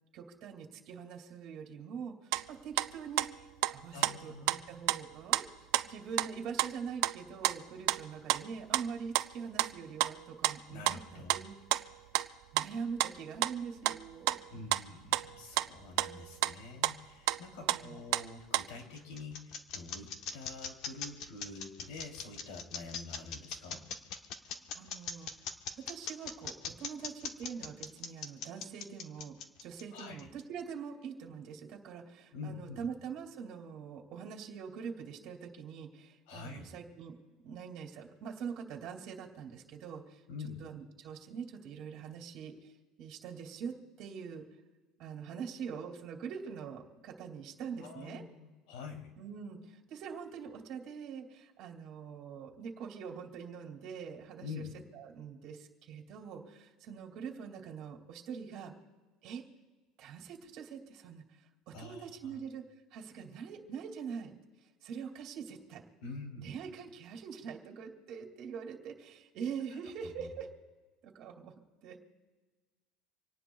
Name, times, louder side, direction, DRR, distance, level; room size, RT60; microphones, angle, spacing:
voice 1, 0.1-11.5 12.5-14.4 17.6-18.0 24.7-25.3 25.8-29.4 29.6-37.2 37.4-40.2 40.6-42.7 43.0-44.4 45.0-48.2 49.2-54.6 54.9-58.7 59.2-59.4 60.0-62.6 62.9-64.4 64.8-65.8 66.4-70.5 71.0-71.5 71.8-72.0, right 6 dB, 45° right, 2 dB, 2.4 m, -44 dB
sound 1, 2.3-2.5 2.8-4.6 4.9-5.4 5.7-5.9 6.2-6.3 6.6-7.2 7.4-7.6 7.9-8.0 8.3-8.9 9.1-9.3 9.6-9.7 10.0-10.6 10.9-11.0 11.3-12.7 13.0-13.1 13.4-14.8 15.1-15.7 16.0-16.5 16.8-16.9 17.3-17.4 17.7-18.3 18.5-18.7, right 16 dB, 70° right, 0.5 m, -30 dB
voice 2, 3.9-4.6 10.7-11.4 14.5-23.9 29.9-30.3 32.3-32.8 36.3-36.7 40.3-40.6 47.8-49.1 54.4-54.7 61.7-62.4 66.0-66.6 70.2-70.3, left 4 dB, 80° left, 2 dB, 3.1 m, -46 dB
sound 2, 18.4-30.4, left 6 dB, 45° left, 1.1 m, -41 dB
26.5 x 18.5 x 2.3 m, 1.3 s
cardioid pair, 170°, 0 cm